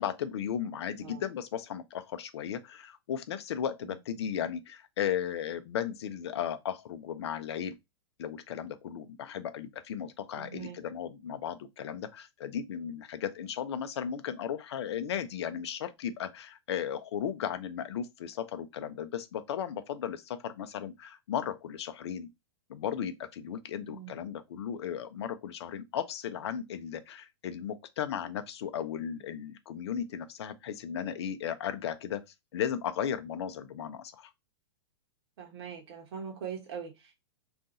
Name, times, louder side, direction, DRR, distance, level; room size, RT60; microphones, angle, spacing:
voice 1, 0.0-7.7 8.2-22.3 22.7-32.2 32.5-34.3, left 9 dB, 70° left, 0.6 m, -35 dB
voice 2, 10.3-10.8 23.9-24.2 35.4-37.2, right 7 dB, 60° right, 0.9 m, -42 dB
2.6 x 2.4 x 3.9 m
hypercardioid pair, 110°, 15 cm